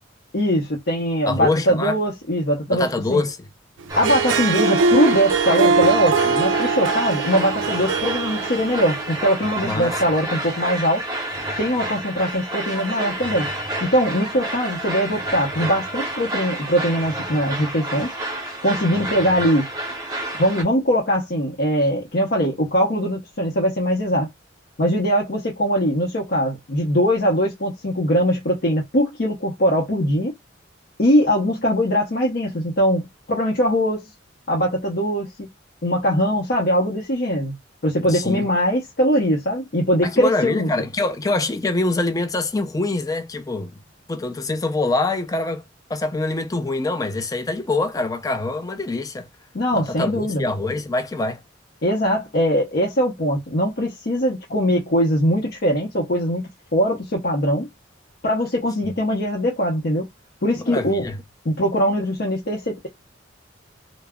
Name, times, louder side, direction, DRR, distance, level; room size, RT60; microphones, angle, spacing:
voice 1, 0.3-3.2 4.0-11.0 11.6-13.5 13.8-18.1 18.6-19.7 20.4-24.3 24.8-30.3 31.0-34.1 34.5-35.5 35.8-37.5 37.8-40.7 49.5-50.4 51.8-57.7 58.2-60.1 60.4-61.1 61.4-62.9, equal, 55° left, 0.7 m, -21 dB
voice 2, 1.3-2.0 2.7-3.4 9.6-10.0 38.1-38.5 40.0-43.7 44.1-45.6 45.9-49.3 49.7-51.4 60.5-61.2, left 2 dB, 20° left, 0.4 m, -24 dB
sound 1, 3.9-20.6, right 1 dB, 20° right, 0.7 m, -29 dB
Harp, 3.9-9.3, right 4 dB, 80° right, 0.3 m, -21 dB
2.3 x 2.0 x 3.4 m
head